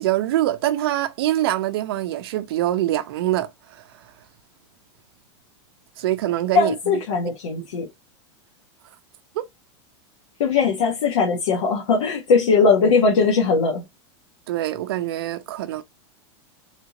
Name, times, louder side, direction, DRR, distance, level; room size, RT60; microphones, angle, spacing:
voice 1, 0.0-3.5 6.0-6.7 7.6-7.7 9.4-9.5 14.5-15.8, right 14 dB, 55° right, 0.5 m, -24 dB
voice 2, 6.5-7.8 10.4-13.8, left 5 dB, 85° left, 1.2 m, -19 dB
3.6 x 2.4 x 2.8 m
supercardioid pair, 175°, 15 cm